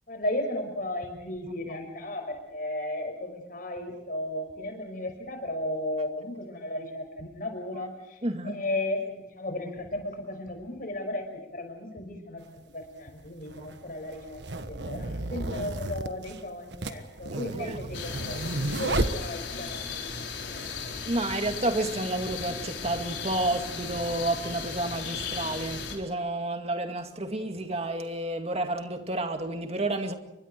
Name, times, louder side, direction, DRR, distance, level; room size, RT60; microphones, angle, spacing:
voice 1, 0.1-21.0, left 1 dB, 50° left, 5.9 m, -35 dB
voice 2, 8.2-8.6 17.3-17.9 21.1-30.1, right 2 dB, 35° right, 2.2 m, -30 dB
sound 1, 12.4-12.5 13.4-19.8, right 2 dB, 75° right, 1.4 m, -33 dB
sound 2, 17.9-26.0, left 5 dB, 80° left, 4.5 m, -36 dB
29.5 x 24.0 x 4.6 m
head